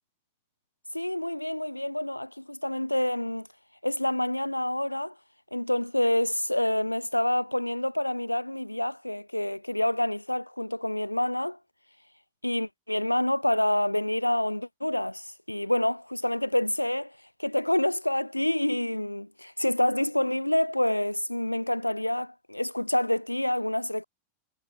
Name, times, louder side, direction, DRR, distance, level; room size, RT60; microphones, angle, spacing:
voice 1, 0.9-3.5 3.8-5.1 5.5-11.6 12.4-17.1 17.4-24.0, left 1 dB, 85° left, 1.3 m, -27 dB
figure-of-eight pair, 90°, 0 cm